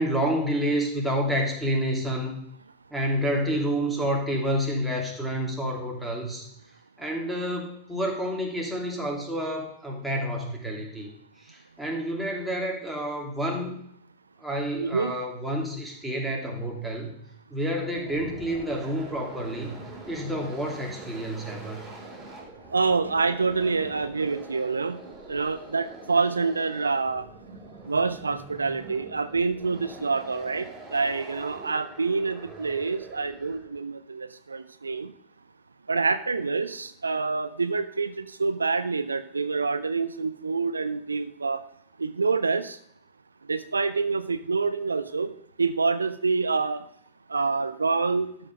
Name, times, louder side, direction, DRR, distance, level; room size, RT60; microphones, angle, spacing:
voice 1, 0.0-2.4 2.9-6.4 7.0-11.1 11.4-13.7 14.4-17.2 17.5-19.8 20.1-21.8, equal, 5° right, -1 dB, 2.6 m, -29 dB
voice 2, 14.8-15.1 22.7-25.0 25.3-27.3 27.9-35.1 35.9-41.6 42.0-42.8 43.5-45.3 45.6-46.8 47.3-48.3, right 4 dB, 75° right, 12 dB, 0.4 m, -27 dB
sound 1, 17.8-33.8, right 3 dB, 20° right, 3.4 m, -44 dB
12.5 x 5.3 x 5.0 m, 0.68 s
figure-of-eight pair, 90°, 0 cm